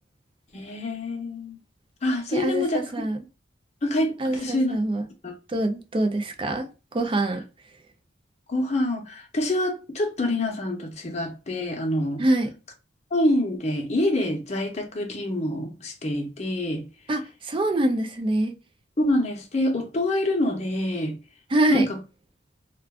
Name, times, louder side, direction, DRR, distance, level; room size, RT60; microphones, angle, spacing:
voice 1, 0.5-1.6 2.0-2.8 3.8-4.8 5.2-5.3 8.5-12.2 13.1-16.9 19.0-21.2 21.7-22.0, left 1 dB, 35° left, 0.7 m, -26 dB
voice 2, 2.3-3.2 4.2-5.0 5.5-6.7 6.9-7.4 12.2-12.5 17.1-18.5 21.5-21.9, right 1 dB, 25° right, 0.4 m, -24 dB
2.4 x 2.3 x 3.4 m
head